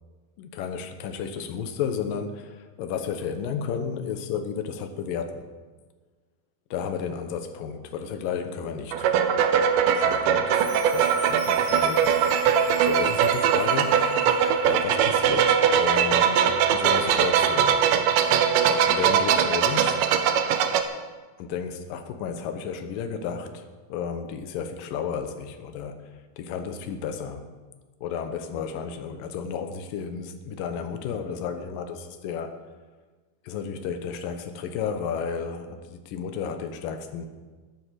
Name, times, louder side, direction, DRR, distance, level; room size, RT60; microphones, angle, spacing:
voice 1, 0.4-5.5 6.7-9.1 9.8-14.1 14.6-17.8 18.9-20.1 21.4-27.5 28.0-32.6 33.4-37.3, left 6 dB, 70° left, 8 dB, 2.5 m, -33 dB
sound 1, 8.9-20.8, right 8 dB, 75° right, 2.1 m, -21 dB
Chime, 10.6-14.6, right 4 dB, 55° right, 4.5 m, -44 dB
12.5 x 10.5 x 7.6 m, 1.4 s
omnidirectional pair, 4.6 m